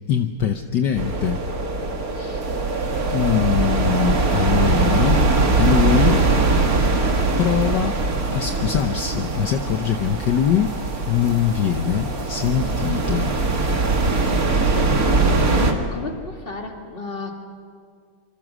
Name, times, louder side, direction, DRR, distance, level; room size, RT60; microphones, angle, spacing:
voice 1, 0.1-1.4 3.1-5.3 5.6-6.2 7.4-8.0 8.3-10.8 11.0-13.3, left 9 dB, 65° left, 6 dB, 1.5 m, -22 dB
sound 1, 1.0-15.7, right 3 dB, 45° right, 2.2 m, -21 dB
voice 2, 2.2-2.5 15.4-17.4, left 3 dB, 30° left, 3 dB, 2.3 m, -32 dB
sound 2, 2.4-14.5, right 2 dB, 75° right, 3.6 m, -42 dB
26.5 x 25.5 x 6.3 m, 2.1 s
omnidirectional pair, 2.1 m